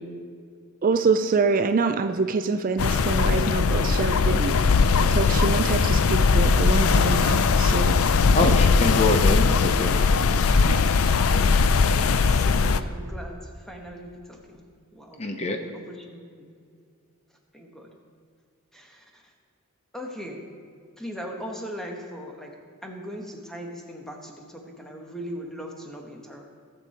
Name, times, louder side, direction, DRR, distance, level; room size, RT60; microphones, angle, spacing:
voice 1, 0.8-4.5 5.1-8.0 8.4-8.5, right 4 dB, 40° right, 8 dB, 0.4 m, -25 dB
sound 1, 2.8-12.8, left 4 dB, 75° left, 0.5 m, -20 dB
voice 2, 8.3-10.0 15.2-15.6, left 2 dB, 30° left, 5 dB, 0.7 m, -24 dB
voice 3, 11.9-14.6 14.9-15.2 15.6-16.5 17.5-17.9 18.7-19.3 19.9-20.4 21.0-22.6 22.8-26.4, equal, ahead, 1 dB, 1.2 m, -39 dB
18.0 x 6.7 x 4.2 m, 2.1 s
head